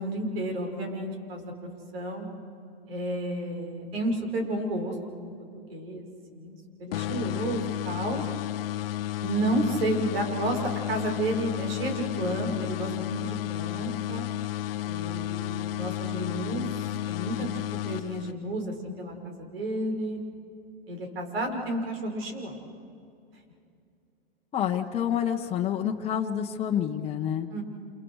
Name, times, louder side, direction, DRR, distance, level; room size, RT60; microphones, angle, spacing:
voice 1, 0.0-1.5 1.9-2.3 2.9-6.0 6.3-8.2 9.2-10.6 10.9-14.3 14.9-17.5 17.9-20.2 20.9-22.7 27.5-27.6, right 1 dB, 80° right, 2 dB, 5.8 m, -31 dB
sound 1, 6.9-18.6, left 15 dB, 70° left, 0.7 m, -32 dB
voice 2, 24.5-27.5, left 9 dB, 20° left, 1 dB, 1.2 m, -28 dB
30.0 x 27.5 x 4.9 m, 2.4 s
hypercardioid pair, 135°, 30 cm